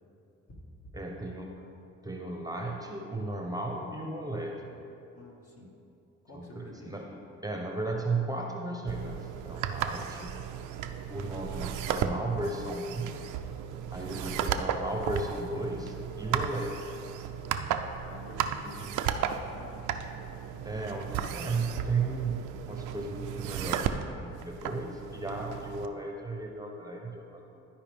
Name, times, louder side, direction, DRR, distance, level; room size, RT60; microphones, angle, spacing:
voice 1, 0.9-1.6 2.0-4.7 6.3-7.0 7.4-10.4 11.1-13.2 13.9-16.9 20.6-27.6, right 2 dB, 10° right, 0 dB, 0.8 m, -35 dB
voice 2, 5.1-5.8 6.2-7.2 13.9-14.5 18.0-21.5, left 1 dB, 50° left, -3 dB, 1.9 m, -50 dB
sound 1, 8.9-25.9, right 8 dB, 85° right, 0.5 m, -35 dB
13.0 x 4.6 x 3.5 m, 2.8 s
cardioid pair, 90°, 30 cm